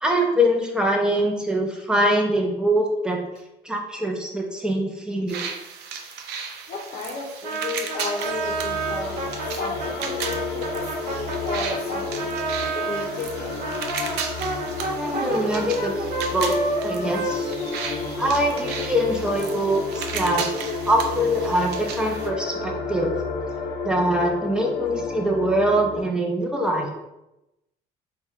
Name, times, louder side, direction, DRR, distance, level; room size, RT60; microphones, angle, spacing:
voice 1, 0.0-3.2 3.6-5.5 15.0-16.5 16.8-17.5 18.2-20.5 20.9-23.1 23.8-26.9, equal, 5° right, 1 dB, 0.7 m, -23 dB
sound 1, 5.3-22.3, right 6 dB, 80° right, 0.5 m, -35 dB
voice 2, 6.7-12.4 12.7-13.6, left 3 dB, 50° left, -3 dB, 0.8 m, -33 dB
Brass instrument, 7.4-13.1 13.6-18.4, right 3 dB, 50° right, 1.0 m, -30 dB
sound 2, 8.2-26.0, left 4 dB, 80° left, 0.6 m, -32 dB
3.5 x 2.3 x 4.1 m, 0.92 s
cardioid pair, 110°, 17 cm